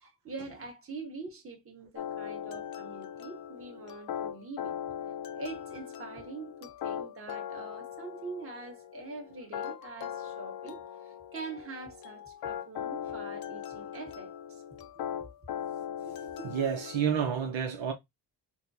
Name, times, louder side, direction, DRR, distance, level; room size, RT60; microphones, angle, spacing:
voice 1, 0.0-4.8 5.3-14.6, right 3 dB, 30° right, 1.4 m, -44 dB
sound 1, 2.0-17.2, left 9 dB, 50° left, 0.5 m, -40 dB
voice 2, 16.0-17.9, right 7 dB, 75° right, 0.9 m, -31 dB
4.2 x 2.3 x 2.7 m
cardioid pair, 95°, 47 cm